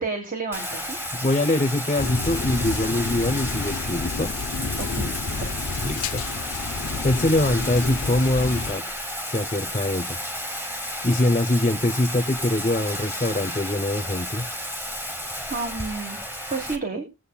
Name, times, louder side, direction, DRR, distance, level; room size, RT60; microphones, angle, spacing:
voice 1, 0.0-1.0 4.8-5.7 15.5-16.2 16.5-17.1, right 3 dB, 40° right, 4 dB, 1.4 m, -31 dB
Bathtub (filling or washing), 0.5-16.8, equal, 10° right, 1.3 m, -32 dB
voice 2, 1.1-4.3 5.8-6.2 7.0-8.8 9.3-10.2 11.0-14.5, left 1 dB, 30° left, 9 dB, 0.7 m, -23 dB
sound 1, 2.0-8.7, left 4 dB, 75° left, 0.5 m, -30 dB
20.5 x 7.7 x 2.3 m, 0.25 s
head